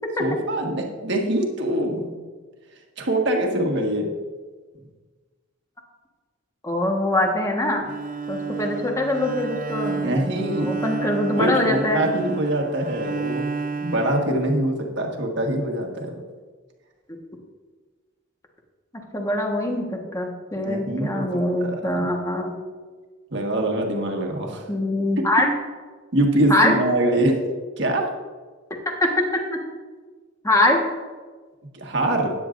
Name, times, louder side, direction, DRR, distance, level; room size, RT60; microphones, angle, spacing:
voice 1, 0.2-2.1 3.0-4.1 10.0-10.7 11.4-13.5 13.8-16.1 20.5-22.1 23.3-24.6 26.1-27.4 27.8-28.1 31.7-32.3, right 1 dB, 60° right, 1 dB, 1.6 m, -24 dB
voice 2, 6.6-7.8 8.3-12.1 19.1-22.5 24.7-25.5 26.5-26.8 29.0-29.1 30.4-30.8, left 1 dB, 15° left, 1 dB, 1.4 m, -23 dB
Bowed string instrument, 7.8-15.0, right 4 dB, 45° right, 0.4 m, -31 dB
13.5 x 9.7 x 2.6 m, 1.4 s
head